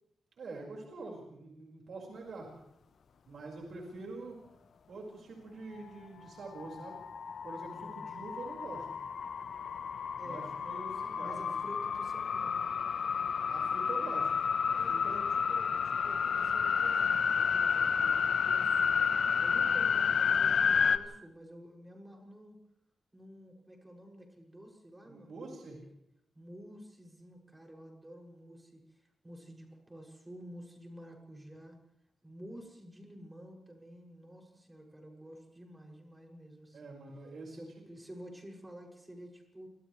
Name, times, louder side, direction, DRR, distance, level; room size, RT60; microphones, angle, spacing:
voice 1, 0.3-2.5 3.3-4.4 4.9-7.0 7.4-8.9 10.2-11.4 11.6-11.7 13.5-15.3 25.0-25.8 36.7-37.6, right 3 dB, 65° right, -1 dB, 5.5 m, -45 dB
sound 1, 6.5-21.0, left 6 dB, 65° left, 1.1 m, -30 dB
voice 2, 7.8-8.3 10.2-10.5 11.2-12.7 14.8-19.0 19.4-22.6 23.1-25.9 26.3-31.8 32.2-37.0 37.5-39.7, equal, 15° right, 0 dB, 7.1 m, -51 dB
30.0 x 26.0 x 3.4 m, 0.77 s
cardioid pair, 105°, 0 cm